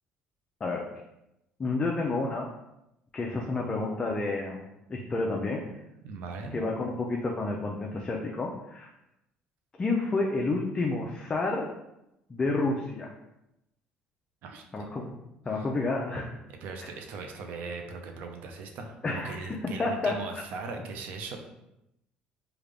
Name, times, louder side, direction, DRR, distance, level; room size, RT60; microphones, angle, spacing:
voice 1, 1.6-2.5 3.1-4.6 4.9-5.7 6.5-8.9 9.8-11.7 12.3-13.1 14.7-15.1 15.5-16.3 16.8-16.9 19.0-20.2, left 3 dB, 25° left, -1 dB, 0.5 m, -30 dB
voice 2, 6.0-6.6 14.4-14.6 16.5-21.4, right 4 dB, 70° right, 4 dB, 0.6 m, -39 dB
3.4 x 2.4 x 3.4 m, 0.86 s
cardioid pair, 105°, 3 cm